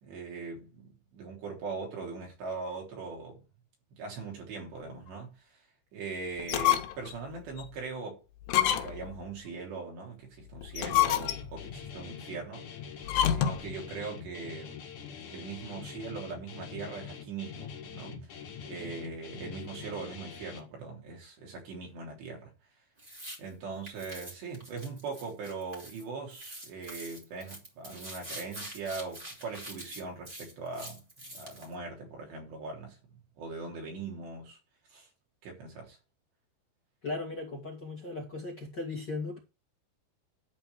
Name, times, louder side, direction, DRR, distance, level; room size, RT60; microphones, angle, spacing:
voice 1, 0.0-3.4 3.9-5.4 5.9-8.2 8.7-12.7 13.3-14.8 15.3-22.5 23.4-31.1 31.3-33.0 33.4-34.6 34.9-35.1 35.4-36.0, right 4 dB, 85° right, 5.8 m, -40 dB
sound 1, 6.4-7.1 7.6-7.7 8.4-9.2 10.6-11.6 13.0-13.7, left 12 dB, 80° left, 3.0 m, -27 dB
Guitar, 10.8-20.6, left 7 dB, 55° left, 2.9 m, -44 dB
sound 2, 23.0-23.4 23.9-26.0 26.3-31.7, right 1 dB, 15° right, 2.2 m, -45 dB
voice 2, 37.0-39.4, left 3 dB, 35° left, 2.0 m, -37 dB
11.5 x 4.4 x 6.8 m
omnidirectional pair, 4.8 m